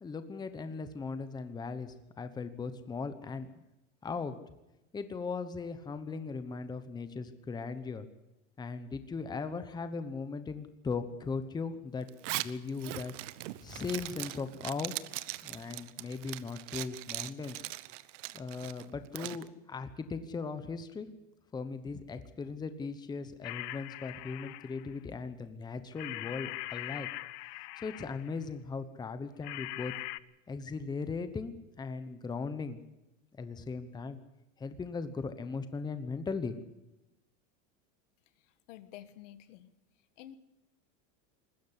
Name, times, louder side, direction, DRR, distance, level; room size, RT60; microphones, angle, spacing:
voice 1, 0.0-3.5 4.0-4.4 4.9-8.1 8.6-13.1 13.6-15.0 15.4-17.6 18.3-21.1 21.5-27.1 27.8-29.9 30.5-32.8 33.3-34.2 34.6-36.5, left 4 dB, 10° left, 10 dB, 1.0 m, -38 dB
Zipper (clothing), 12.1-19.4, right 18 dB, 70° right, 1.0 m, -40 dB
sound 1, 23.4-25.0 26.0-28.4 29.4-30.2, left 20 dB, 55° left, 0.8 m, -41 dB
voice 2, 38.4-39.7 40.2-40.4, left 12 dB, 75° left, 12 dB, 1.7 m, -50 dB
21.0 x 15.5 x 8.2 m, 0.95 s
supercardioid pair, 155°, 37 cm